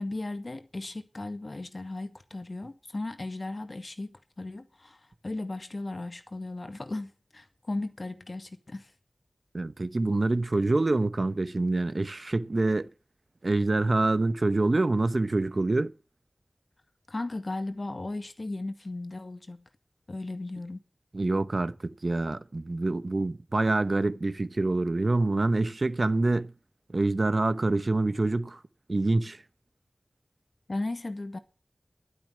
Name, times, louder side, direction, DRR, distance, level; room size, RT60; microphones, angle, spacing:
voice 1, 0.0-8.9 17.1-19.7 20.1-20.8 30.7-31.4, left 2 dB, 50° left, 1.9 m, -36 dB
voice 2, 9.5-12.9 13.4-15.9 21.1-26.5 26.9-28.6 28.9-29.4, right 2 dB, 55° right, 1.0 m, -26 dB
12.0 x 10.0 x 7.6 m
wide cardioid pair, 70°, 0 cm